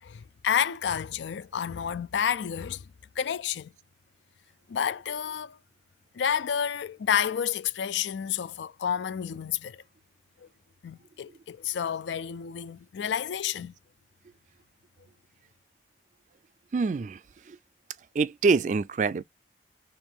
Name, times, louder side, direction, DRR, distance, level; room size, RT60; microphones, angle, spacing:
voice 1, 0.0-2.9 3.2-3.7 4.7-5.6 6.1-9.8 10.4-10.5 10.8-13.7, left 8 dB, 85° left, 0.4 m, -30 dB
voice 2, 16.7-17.2 17.5-17.6 18.2-19.2, right 4 dB, 45° right, 0.3 m, -25 dB
4.5 x 3.0 x 3.5 m
head